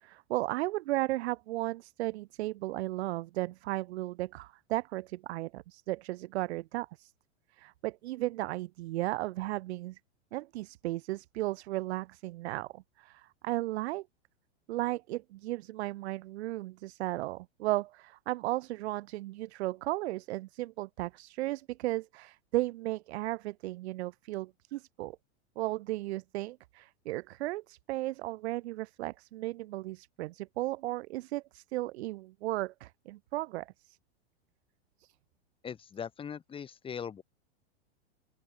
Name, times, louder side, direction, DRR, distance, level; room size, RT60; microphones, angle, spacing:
voice 1, 0.0-7.1 7.6-10.0 10.3-14.1 14.7-25.2 25.6-34.0 35.0-35.1, right 17 dB, 75° right, 0.5 m, -35 dB
voice 2, 35.6-37.2, left 7 dB, 15° left, 3.8 m, -40 dB
open air
supercardioid pair, 150°, 33 cm